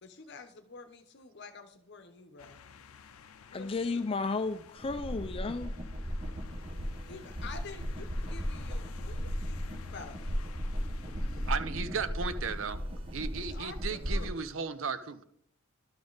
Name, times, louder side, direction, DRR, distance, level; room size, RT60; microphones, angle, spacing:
voice 1, 0.0-2.6 3.5-4.0 7.1-9.6 9.9-10.2 13.4-14.5, left 4 dB, 55° left, 8 dB, 0.9 m, -48 dB
sound 1, 2.4-11.6, left 6 dB, 85° left, 0.5 m, -50 dB
voice 2, 3.5-5.7, left 3 dB, 25° left, 10 dB, 0.4 m, -33 dB
sound 2, 4.8-14.3, equal, 25° right, 1.0 m, -36 dB
sound 3, 6.7-12.0, equal, 10° right, 2.6 m, -53 dB
voice 3, 11.5-12.8 13.1-15.2, right 5 dB, 65° right, 12 dB, 0.6 m, -35 dB
12.0 x 5.3 x 3.9 m, 0.69 s
head